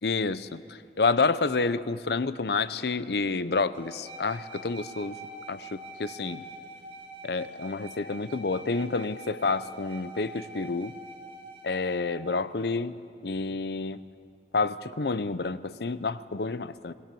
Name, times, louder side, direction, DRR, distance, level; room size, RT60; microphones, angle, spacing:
voice 1, 0.0-5.2 5.5-6.4 7.2-10.9 11.6-13.0 13.2-14.0 14.5-16.9, left 4 dB, 65° left, 15 dB, 0.7 m, -29 dB
sound 1, 3.7-12.0, right 2 dB, 25° right, 2.3 m, -45 dB
24.0 x 18.0 x 7.6 m, 2.4 s
head